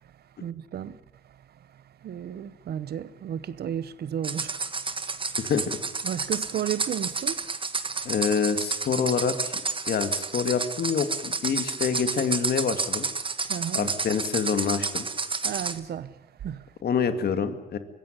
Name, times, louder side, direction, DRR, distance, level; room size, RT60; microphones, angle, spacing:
voice 1, 0.4-1.0 2.0-4.6 4.9-5.0 6.0-7.4 13.4-13.9 15.4-16.7, right 9 dB, 80° right, 1.0 m, -33 dB
sound 1, 4.2-15.8, right 4 dB, 30° right, 1.5 m, -30 dB
voice 2, 8.1-9.6 9.9-13.0 13.7-15.1 16.8-17.8, left 6 dB, 75° left, 2.2 m, -26 dB
24.0 x 16.0 x 9.9 m
cardioid pair, 80°, 16 cm